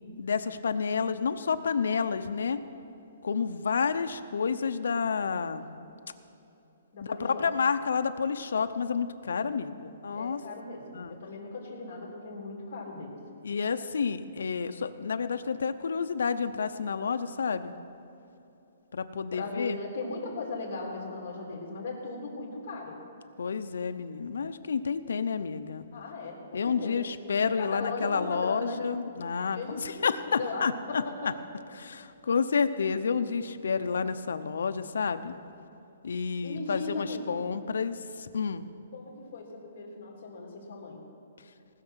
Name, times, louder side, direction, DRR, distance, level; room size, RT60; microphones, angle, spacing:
voice 1, 0.2-2.6 3.2-5.7 7.0-10.4 10.9-11.1 13.4-17.7 18.9-19.8 23.4-25.8 26.5-31.0 31.7-35.4 36.0-38.6, left 5 dB, 85° left, 10 dB, 0.7 m, -30 dB
voice 2, 6.9-7.4 9.3-9.7 10.1-13.2 19.3-23.0 25.9-27.1 27.6-28.8 29.6-31.3 36.4-37.3 38.9-41.0, left 3 dB, 45° left, -1 dB, 3.1 m, -38 dB
19.5 x 6.6 x 6.3 m, 2.9 s
hypercardioid pair, 170°, 0 cm